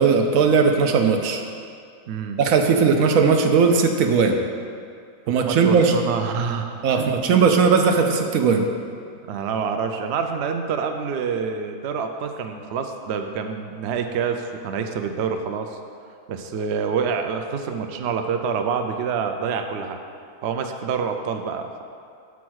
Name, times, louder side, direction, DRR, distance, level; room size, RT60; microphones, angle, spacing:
voice 1, 0.0-1.4 2.4-4.4 5.3-5.9 6.8-8.7, right 5 dB, 85° right, 4 dB, 1.1 m, -18 dB
voice 2, 2.1-2.4 5.3-7.2 9.3-15.8 16.3-20.0 20.4-21.8, right 6 dB, 65° right, 6 dB, 0.7 m, -27 dB
7.2 x 4.7 x 6.2 m, 2.3 s
omnidirectional pair, 1.4 m